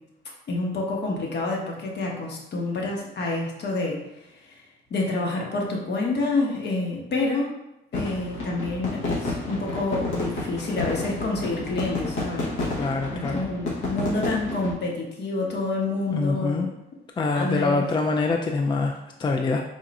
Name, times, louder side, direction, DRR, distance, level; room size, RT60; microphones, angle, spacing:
voice 1, 0.5-4.0 4.4-4.6 4.9-7.5 7.9-12.5 12.8-16.7 17.3-17.9, left 2 dB, 60° left, -1 dB, 1.1 m, -28 dB
sound 1, 7.9-14.7, left 2 dB, 80° left, 1.1 m, -30 dB
voice 2, 12.8-13.4 16.1-16.7 17.2-19.6, left 3 dB, 25° left, 3 dB, 0.3 m, -25 dB
3.7 x 2.4 x 4.1 m, 0.91 s
cardioid pair, 90°, 20 cm